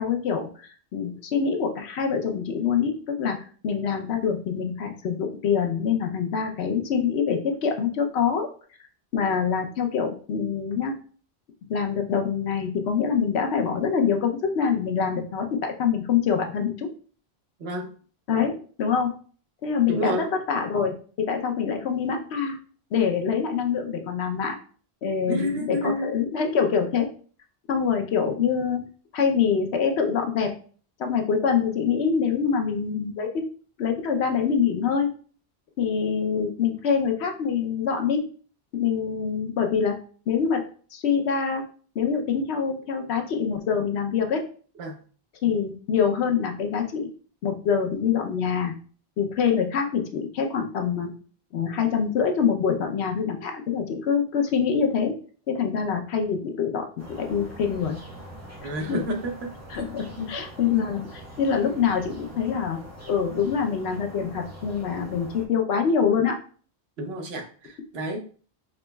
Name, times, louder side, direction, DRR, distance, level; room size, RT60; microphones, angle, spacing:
voice 1, 0.0-8.5 9.1-11.0 11.7-16.9 18.3-19.1 19.6-22.6 22.9-24.6 25.0-27.1 27.7-28.9 29.1-30.5 31.0-33.3 33.8-35.1 35.8-38.3 38.7-40.0 40.3-41.7 41.9-44.5 45.4-47.1 47.4-48.7 49.2-51.1 51.5-55.2 55.5-58.0 58.9-59.0 59.7-61.0 61.4-62.8 63.1-66.4, left 6 dB, 85° left, 4 dB, 1.0 m, -25 dB
voice 2, 19.9-20.3 25.3-26.1 44.8-45.0 58.6-59.8 60.2-60.3 60.7-60.9 67.0-68.2, equal, 75° right, 3 dB, 1.1 m, -30 dB
sound 1, 57.0-65.4, right 1 dB, 15° right, 0.8 m, -43 dB
5.5 x 3.0 x 2.2 m, 0.42 s
omnidirectional pair, 1.1 m